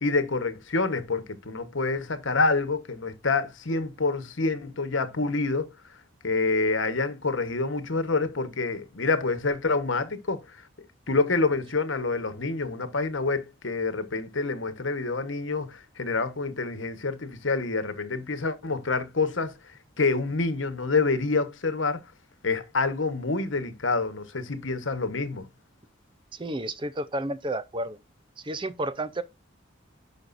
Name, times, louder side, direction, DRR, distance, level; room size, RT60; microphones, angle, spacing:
voice 1, 0.0-5.7 6.2-10.4 11.1-19.5 20.0-22.0 22.4-25.5, left 3 dB, 80° left, 1.3 m, -27 dB
voice 2, 26.3-28.0 28.4-29.2, right 1 dB, 25° right, 0.6 m, -31 dB
11.0 x 5.2 x 2.6 m
head